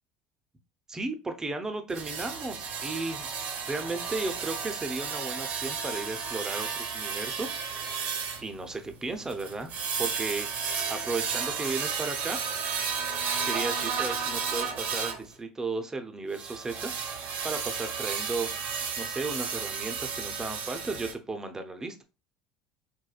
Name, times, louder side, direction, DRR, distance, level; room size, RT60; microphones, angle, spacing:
voice 1, 0.9-3.3 3.7-8.0 8.4-9.7 10.0-12.4 13.4-16.9 17.4-18.5 19.0-22.0, right 3 dB, 15° right, 7 dB, 0.6 m, -35 dB
sound 1, 1.9-15.2 16.3-21.1, right 6 dB, 55° right, 0.8 m, -33 dB
4.2 x 2.2 x 2.3 m, 0.31 s
hypercardioid pair, 75°, 3 cm